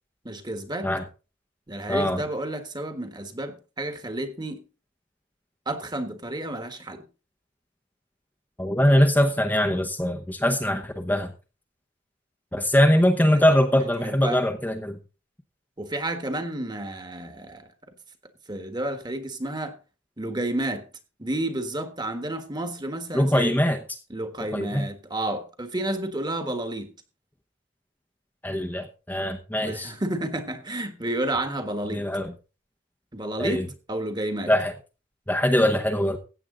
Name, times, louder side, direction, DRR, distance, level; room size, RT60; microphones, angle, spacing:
voice 1, 0.2-0.9 1.7-4.6 5.6-7.0 13.3-13.4 14.0-14.4 15.8-17.7 18.5-19.8 20.2-20.8 21.2-23.6 24.1-26.9 29.6-32.0 33.1-34.5, right 1 dB, 20° right, 1.5 m, -31 dB
voice 2, 1.9-2.2 8.6-11.3 12.5-15.0 23.1-23.8 24.5-24.9 28.4-29.9 31.9-32.3 33.4-33.7 34.5-34.7 35.3-36.2, equal, 10° left, 0.9 m, -22 dB
15.0 x 8.6 x 3.9 m
head